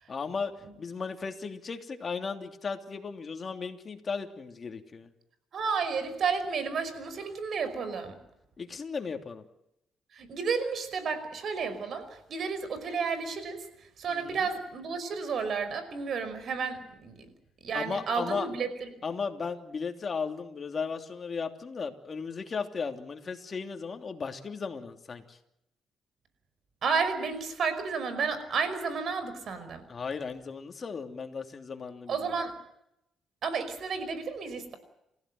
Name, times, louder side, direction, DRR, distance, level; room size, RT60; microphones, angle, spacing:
voice 1, 0.1-5.1 8.6-9.4 14.1-14.4 17.7-18.5 19.0-25.4 29.9-32.3, left 5 dB, 40° left, 5 dB, 3.1 m, -36 dB
voice 2, 5.5-8.2 10.1-17.3 17.6-18.9 26.8-29.8 32.1-32.6 33.4-34.8, right 5 dB, 60° right, 11 dB, 5.4 m, -32 dB
29.0 x 16.0 x 7.9 m, 0.82 s
cardioid pair, 90°, 0 cm